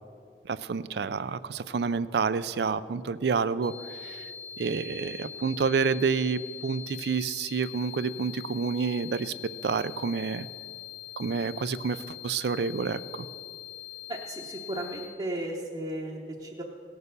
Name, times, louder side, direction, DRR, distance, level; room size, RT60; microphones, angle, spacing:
voice 1, 0.4-4.3 4.6-9.3 9.6-10.5 11.2-13.3, right 5 dB, 70° right, 15 dB, 0.4 m, -29 dB
sound 1, 3.6-15.0, left 11 dB, 90° left, 3.1 m, -43 dB
voice 2, 14.1-16.6, right 1 dB, 30° right, -2 dB, 0.8 m, -35 dB
17.5 x 6.7 x 6.7 m, 2.4 s
head